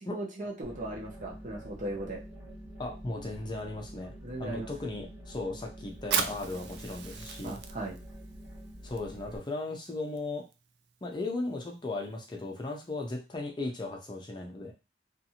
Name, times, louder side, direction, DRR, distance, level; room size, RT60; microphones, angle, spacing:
voice 1, 0.1-2.2 4.2-4.7 7.4-8.0, right 1 dB, 45° right, -2 dB, 0.8 m, -37 dB
sound 1, 0.6-9.4, equal, 10° right, 0.8 m, -47 dB
voice 2, 2.8-4.1 4.4-7.6 8.8-10.4 11.0-14.7, left 2 dB, 25° left, 1 dB, 0.5 m, -36 dB
Fire, 6.0-13.2, right 7 dB, 60° right, 0.4 m, -39 dB
2.6 x 2.5 x 2.8 m, 0.28 s
head